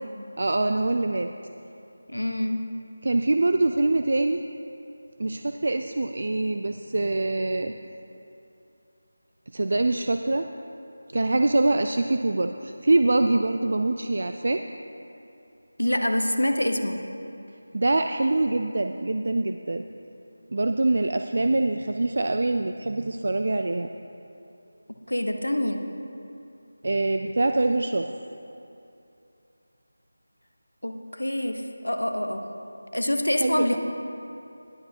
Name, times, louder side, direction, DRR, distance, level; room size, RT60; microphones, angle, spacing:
voice 1, 0.4-1.3 3.0-4.4 5.2-7.7 9.5-10.5 11.1-14.6 17.7-19.8 20.5-23.9 26.8-28.1 33.4-33.8, right 2 dB, 55° right, 6 dB, 0.4 m, -24 dB
voice 2, 2.1-2.6 15.8-17.0 25.1-25.8 30.8-32.5 32.9-33.8, left 1 dB, 90° left, 5 dB, 1.0 m, -26 dB
20.0 x 8.3 x 2.8 m, 2.7 s
figure-of-eight pair, 165°, 0 cm